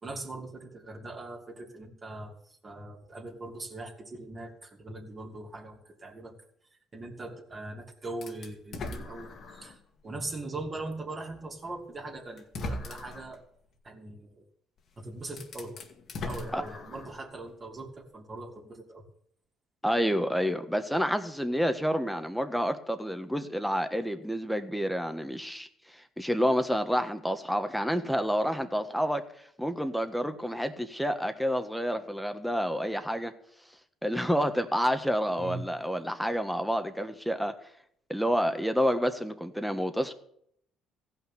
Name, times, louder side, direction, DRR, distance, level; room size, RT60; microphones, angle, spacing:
voice 1, 0.0-6.3 6.9-9.8 10.0-13.4 13.8-14.4 15.0-15.8 16.2-19.0 35.4-35.6, right 2 dB, 35° right, 0 dB, 2.9 m, -41 dB
sound 1, 8.2-9.8 10.4-10.5 11.7-11.8 12.4-13.3 14.8-14.9 15.3-17.2, left 2 dB, 55° left, 1.9 m, -39 dB
voice 2, 19.8-25.7 25.9-29.2 29.6-33.3 34.0-37.5 38.1-40.1, equal, ahead, 8 dB, 1.4 m, -29 dB
15.0 x 5.7 x 9.3 m, 0.68 s
supercardioid pair, 75°, 0 cm